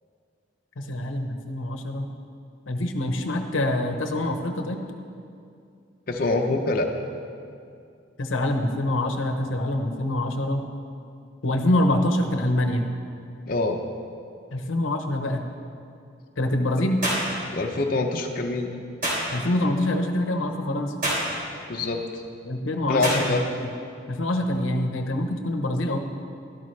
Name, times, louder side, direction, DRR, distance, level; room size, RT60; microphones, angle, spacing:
voice 1, 0.8-2.1 2.7-4.8 8.2-10.6 11.4-12.9 14.5-15.5 16.4-17.0 19.3-20.9 22.4-23.7 24.1-26.0, left 1 dB, 90° left, 5 dB, 0.9 m, -25 dB
voice 2, 6.1-6.9 13.5-13.8 17.5-18.7 21.7-22.0 22.9-23.4, left 2 dB, 50° left, 2 dB, 0.7 m, -25 dB
sound 1, 17.0-17.3 19.0-19.3 21.0-21.3 23.0-23.3, right 1 dB, 45° right, 3.0 m, -25 dB
12.5 x 12.0 x 3.2 m, 2.4 s
head